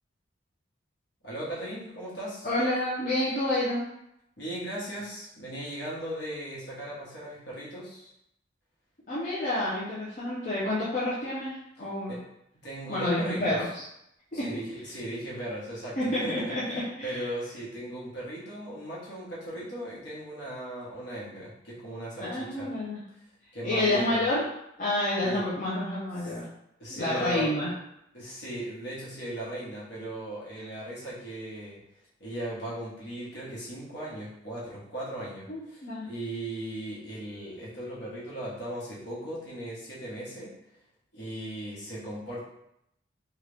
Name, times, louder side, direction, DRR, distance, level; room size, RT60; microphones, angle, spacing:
voice 1, 1.2-2.5 4.4-8.1 12.1-12.2 12.6-13.6 14.3-16.5 17.0-22.7 23.5-24.2 25.2-25.5 26.2-26.3 26.8-27.5 28.1-31.8 32.2-40.5 41.1-42.4, right 1 dB, 65° left, -7 dB, 1.3 m, -37 dB
voice 2, 2.4-3.9 9.1-12.1 12.9-13.8 14.3-14.4 16.0-17.3 22.2-23.0 23.6-24.4 24.8-26.5 26.9-27.7 30.6-30.7 35.5-36.1, left 1 dB, 45° left, -9 dB, 0.7 m, -29 dB
3.3 x 2.4 x 3.4 m, 0.79 s
head